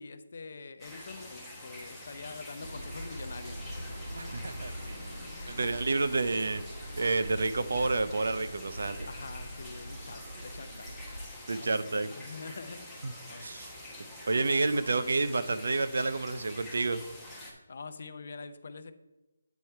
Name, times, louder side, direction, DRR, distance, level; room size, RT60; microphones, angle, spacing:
voice 1, 0.0-3.6 5.4-5.7 9.0-10.9 11.5-13.5 17.7-18.9, left 4 dB, 50° left, 10 dB, 0.6 m, -45 dB
sound 1, 0.8-17.5, left 1 dB, ahead, 1.0 m, -46 dB
sound 2, 2.6-11.3, equal, 90° right, 1.2 m, -43 dB
voice 2, 4.2-5.0 5.5-6.6 7.0-9.1 11.5-12.1 13.0-13.1 13.4-13.7 14.3-17.0, right 3 dB, 65° right, 12 dB, 0.5 m, -29 dB
8.2 x 4.6 x 4.4 m, 1.0 s
hypercardioid pair, 170°, 0 cm